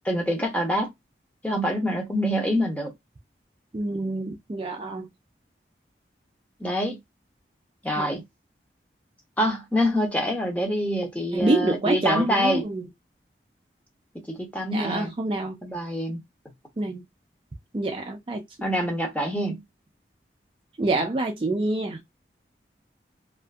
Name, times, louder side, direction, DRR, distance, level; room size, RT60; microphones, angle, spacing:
voice 1, 0.1-0.9 1.4-2.9 6.6-7.0 7.8-8.2 9.4-12.7 14.3-15.1 15.6-16.2 18.6-19.6, equal, 10° left, 0.7 m, -25 dB
voice 2, 3.7-5.1 7.9-8.1 11.3-12.9 14.7-15.6 16.8-17.0 17.7-18.4 20.8-22.0, right 2 dB, 30° right, 0.4 m, -27 dB
2.5 x 2.5 x 2.3 m
head